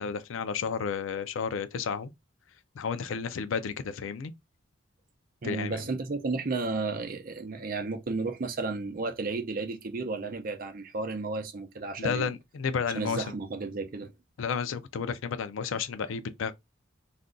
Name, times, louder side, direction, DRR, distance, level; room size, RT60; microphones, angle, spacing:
voice 1, 0.0-2.1 2.8-4.3 5.4-5.8 12.0-13.2 14.4-16.5, left 6 dB, 90° left, 0.4 m, -32 dB
voice 2, 5.4-12.3 12.9-14.1, right 3 dB, 45° right, 0.5 m, -33 dB
2.5 x 2.2 x 3.7 m
head